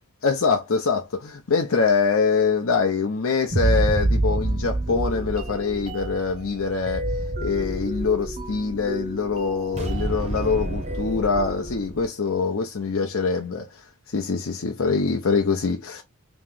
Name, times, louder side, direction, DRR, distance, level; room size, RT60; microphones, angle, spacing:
voice 1, 0.2-7.0 7.4-13.7 14.1-16.0, left 4 dB, 65° left, 0.6 m, -24 dB
sound 1, 3.5-12.0, right 1 dB, 30° right, 0.8 m, -27 dB
3.0 x 2.9 x 3.7 m
head